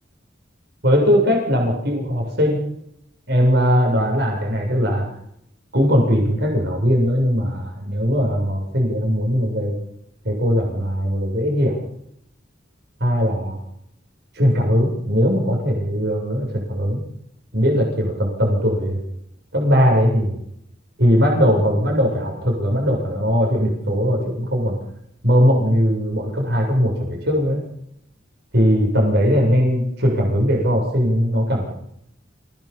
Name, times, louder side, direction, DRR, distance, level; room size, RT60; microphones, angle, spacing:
voice 1, 0.8-2.6 3.3-5.1 5.7-9.7 10.2-11.8 13.0-13.6 14.3-17.0 17.5-19.0 19.5-20.4 21.0-24.8 25.2-27.6 28.5-31.7, equal, 60° right, 0 dB, 7.6 m, -19 dB
27.5 x 18.0 x 7.5 m, 0.75 s
head